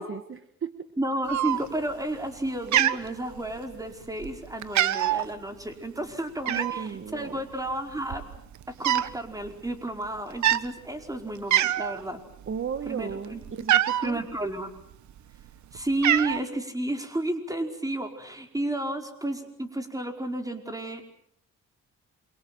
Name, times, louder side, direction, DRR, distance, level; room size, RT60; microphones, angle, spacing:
voice 1, 0.0-0.9 6.5-7.4 12.5-14.2, right 7 dB, 45° right, 11 dB, 1.4 m, -35 dB
voice 2, 1.0-8.2 8.7-12.2 12.9-13.4 14.0-14.7 15.7-21.0, right 1 dB, 10° right, 5 dB, 4.9 m, -32 dB
Cat, 1.3-1.9 2.2-2.5 2.7-3.7 4.2-4.4 4.6-5.3 6.5-6.9 7.7-7.8 8.0-9.2 9.4-9.7 10.3-10.7 11.1-11.2 11.5-12.0 12.4-14.1 14.9-15.5 15.7-16.4, right 12 dB, 70° right, 1.2 m, -24 dB
28.0 x 24.5 x 7.7 m, 0.71 s
cardioid pair, 90°, 30 cm